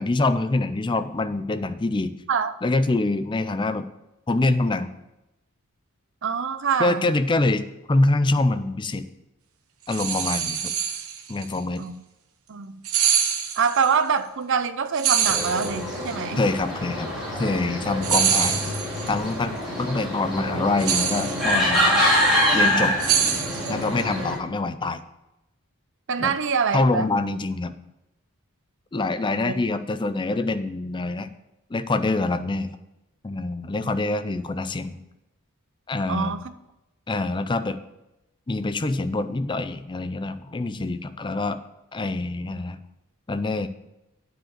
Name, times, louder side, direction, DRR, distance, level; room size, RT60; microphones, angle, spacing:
voice 1, 0.0-2.1 2.6-3.9 4.3-4.9 6.8-9.1 9.9-10.7 11.3-11.9 16.4-18.6 19.1-21.9 22.5-22.9 23.7-25.0 26.2-26.3 26.7-27.8 28.9-31.3 31.7-32.7 33.2-35.0 35.9-36.4 37.1-37.8 38.5-41.6 41.9-42.8 43.3-43.7, left 2 dB, 20° left, 11 dB, 0.4 m, -25 dB
voice 2, 6.2-7.1 11.8-11.9 12.5-12.8 13.6-16.4 22.5-22.9 26.1-27.1 29.4-29.5 36.1-36.4, right 6 dB, 55° right, 11 dB, 0.6 m, -25 dB
sound 1, 9.9-11.4 12.8-13.9 14.9-16.1 18.0-19.1 20.8-21.8 23.0-24.0, right 8 dB, 70° right, 1.0 m, -24 dB
sound 2, 15.2-24.4, equal, ahead, 2.8 m, -25 dB
9.0 x 5.1 x 7.5 m, 0.93 s
head